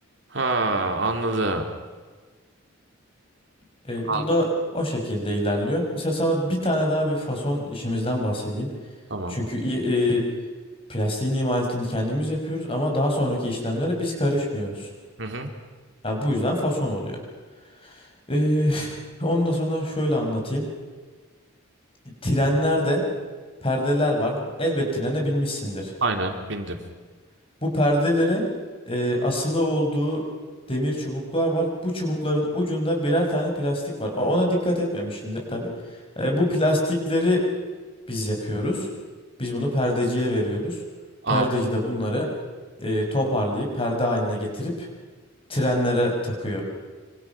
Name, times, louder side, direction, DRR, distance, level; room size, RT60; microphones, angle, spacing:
voice 1, 0.3-1.7 4.1-4.3 9.1-9.4 15.2-15.5 26.0-26.8 41.2-41.5, right 2 dB, 60° right, 4 dB, 3.1 m, -25 dB
voice 2, 3.9-8.7 9.3-10.2 10.9-14.9 16.0-17.1 17.8-20.7 22.2-23.0 23.6-25.9 27.6-28.5 28.9-30.2 30.7-35.7 36.2-37.4 38.1-38.9 39.4-40.8 41.3-42.3 42.8-44.9 45.5-46.6, equal, 25° left, 1 dB, 5.8 m, -24 dB
26.5 x 26.5 x 6.1 m, 1.4 s
head